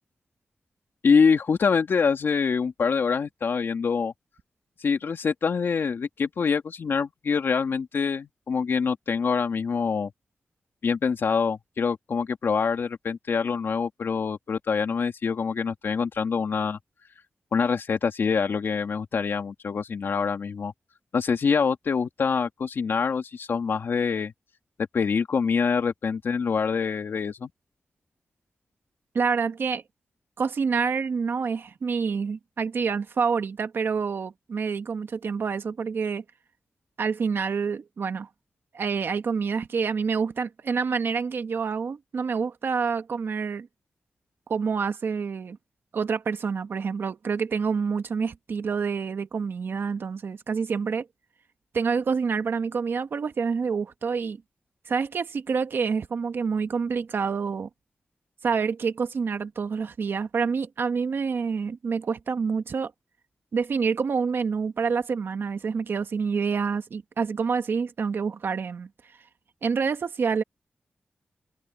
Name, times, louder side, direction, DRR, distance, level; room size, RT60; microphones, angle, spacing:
voice 1, 1.0-4.1 4.8-10.1 10.8-16.8 17.5-20.7 21.1-24.3 24.9-27.5, left 5 dB, 75° left, 2.6 m, -25 dB
voice 2, 29.1-29.8 30.4-36.2 37.0-38.3 38.7-43.7 44.5-45.6 45.9-51.1 51.7-54.4 54.9-57.7 58.4-62.9 63.5-68.9 69.6-70.4, right 5 dB, 70° right, 1.4 m, -27 dB
open air
wide cardioid pair, 80°, 4 cm